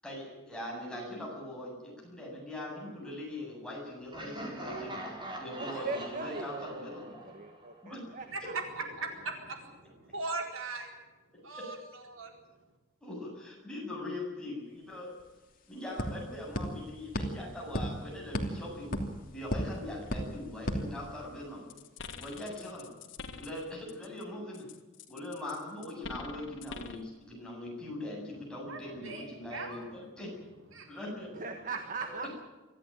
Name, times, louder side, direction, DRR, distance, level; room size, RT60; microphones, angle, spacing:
voice 1, 0.0-5.0 5.4-7.2 7.8-8.1 13.0-15.1 15.7-18.9 19.3-21.7 22.2-22.9 23.4-24.7 25.1-30.3 30.9-31.3 32.2-32.3, left 1 dB, 5° left, -3 dB, 8.0 m, -41 dB
Laughter, 4.1-8.0, right 1 dB, 25° right, 4.2 m, -43 dB
voice 2, 5.6-8.5 31.3-32.3, right 3 dB, 40° right, 6 dB, 1.5 m, -40 dB
voice 3, 8.8-10.9 11.4-12.3 28.6-29.8 30.7-30.9 31.7-31.8, right 3 dB, 80° right, 2 dB, 4.4 m, -40 dB
sound 1, 14.9-15.0 15.2-21.6, equal, 45° left, 2.9 m, -37 dB
sound 2, 21.7-24.2 24.5-27.1, left 4 dB, 70° left, 1.9 m, -45 dB
24.0 x 14.5 x 9.1 m, 1.2 s
head